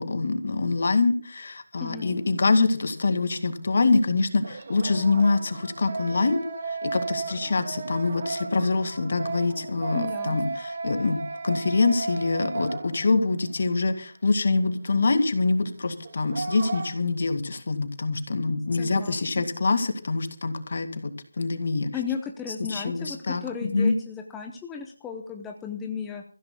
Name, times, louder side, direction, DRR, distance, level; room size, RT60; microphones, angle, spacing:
voice 1, 0.0-21.1 21.4-21.9 22.7-23.9, left 3 dB, 50° left, 8 dB, 2.1 m, -25 dB
voice 2, 1.8-2.2 9.9-10.4 18.8-19.5 21.9-26.2, left 6 dB, 5° left, 2 dB, 0.7 m, -35 dB
sound 1, 1.8-1.9 4.4-13.3 13.6-13.7 16.0-16.9, right 4 dB, 40° right, 1.8 m, -34 dB
28.5 x 15.0 x 2.3 m, 0.40 s
figure-of-eight pair, 170°, 0 cm